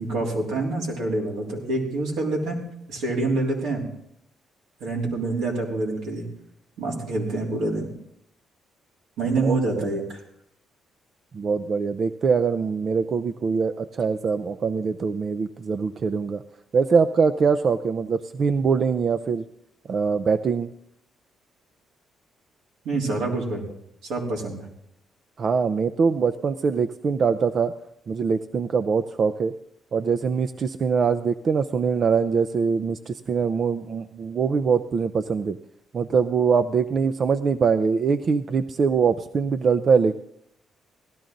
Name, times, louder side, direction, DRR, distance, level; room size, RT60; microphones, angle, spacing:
voice 1, 0.0-2.6 2.9-3.8 4.8-6.2 6.8-7.8 9.2-10.2 22.8-23.6 24.1-24.7, right 2 dB, 90° right, -2 dB, 3.3 m, -26 dB
voice 2, 11.3-16.4 16.7-19.4 19.9-20.7 25.4-27.7 28.1-29.5 29.9-35.6 35.9-40.1, right 5 dB, 50° right, 10 dB, 0.5 m, -23 dB
17.0 x 12.0 x 3.9 m, 0.76 s
cardioid pair, 90°, 0 cm